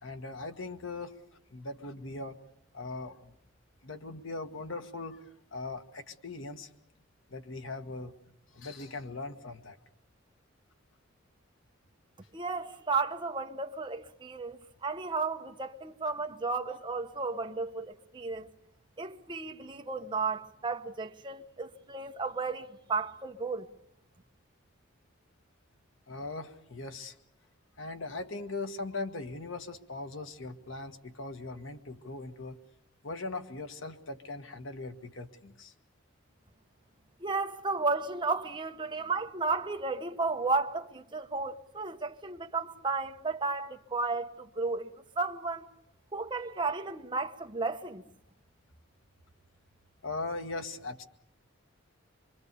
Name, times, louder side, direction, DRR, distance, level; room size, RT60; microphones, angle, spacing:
voice 1, 0.0-1.1 1.5-2.4 2.7-3.3 3.8-5.2 5.5-6.7 7.3-9.8 26.1-27.1 27.8-32.6 33.0-35.7 50.0-51.0, left 3 dB, 80° left, 1.6 m, -40 dB
voice 2, 12.3-18.5 19.0-23.7 37.2-44.9 45.2-45.7 46.1-48.0, right 3 dB, 25° right, 1.1 m, -33 dB
25.0 x 24.5 x 6.9 m
head